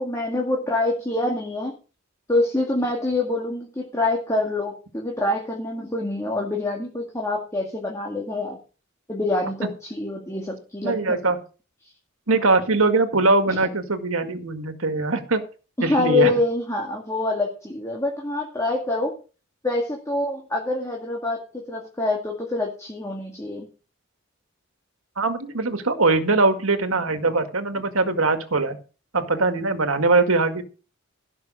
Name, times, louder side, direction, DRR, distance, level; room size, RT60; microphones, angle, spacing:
voice 1, 0.0-1.7 2.3-8.6 9.1-11.2 13.5-13.7 15.8-19.1 19.6-23.7, left 2 dB, 15° left, -1 dB, 2.2 m, -26 dB
voice 2, 10.8-11.4 12.3-15.4 15.8-16.3 25.2-28.8 29.1-30.6, right 3 dB, 75° right, 8 dB, 1.9 m, -21 dB
15.5 x 6.1 x 6.3 m, 0.35 s
head